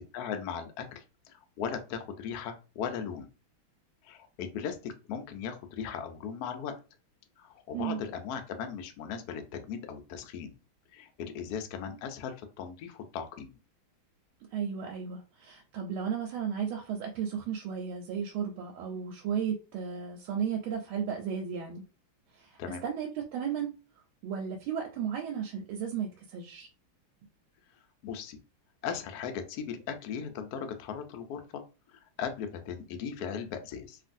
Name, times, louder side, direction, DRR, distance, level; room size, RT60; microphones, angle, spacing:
voice 1, 0.1-3.3 4.0-6.8 7.4-10.6 10.9-13.6 22.6-22.8 28.0-28.4 28.8-31.6 31.9-34.0, left 7 dB, 90° left, 6 dB, 0.8 m, -38 dB
voice 2, 14.5-21.8 22.3-23.7 24.2-26.7, right 7 dB, 85° right, 1 dB, 1.4 m, -34 dB
3.0 x 2.5 x 2.5 m, 0.32 s
omnidirectional pair, 2.2 m